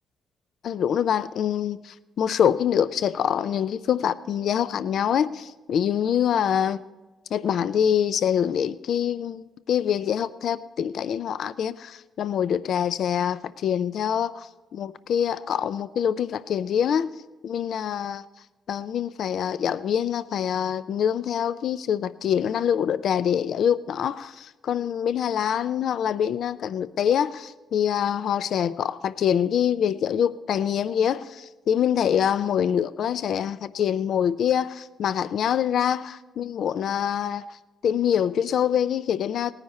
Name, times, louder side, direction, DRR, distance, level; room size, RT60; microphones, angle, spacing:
voice 1, 0.6-6.8 7.3-17.1 17.4-18.2 18.7-37.4 37.8-39.5, left 9 dB, 65° left, 0.4 m, -25 dB
18.5 x 9.7 x 4.2 m
cardioid pair, 90°, 0 cm